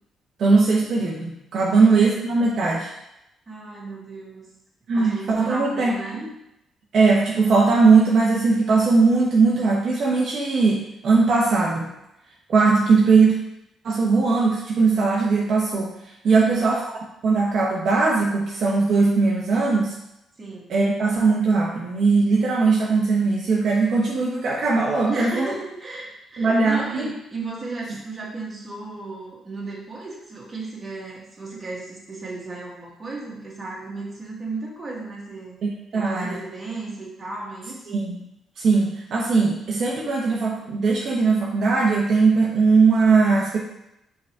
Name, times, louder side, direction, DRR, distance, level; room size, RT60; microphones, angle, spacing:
voice 1, 0.4-2.9 4.9-6.3 6.9-11.9 12.5-13.4 13.8-15.9 16.2-16.8 17.2-19.9 20.7-25.5 26.4-27.1 35.6-36.4 37.9-38.2 38.6-43.6, right 4 dB, 60° right, -3 dB, 1.0 m, -19 dB
voice 2, 1.7-2.2 3.5-4.5 4.9-6.2 16.3-16.7 20.4-20.8 25.1-35.6 35.9-38.0, right 3 dB, 30° right, -4 dB, 2.1 m, -34 dB
5.3 x 4.0 x 4.7 m, 0.84 s
cardioid pair, 90°, 0 cm